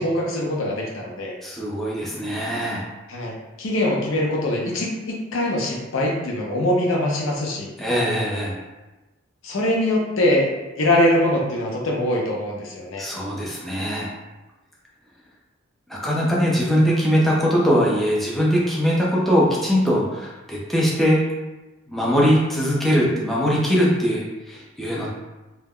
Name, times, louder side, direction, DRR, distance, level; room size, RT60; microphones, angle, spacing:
voice 1, 0.0-1.3 3.1-3.3 3.6-7.7 9.4-10.5 10.8-13.1, left 1 dB, 85° left, -1 dB, 0.6 m, -22 dB
voice 2, 1.4-2.8 7.8-8.6 13.0-14.1 15.9-21.2 21.9-25.1, equal, ahead, -5 dB, 0.4 m, -21 dB
2.1 x 2.0 x 3.5 m, 1.1 s
head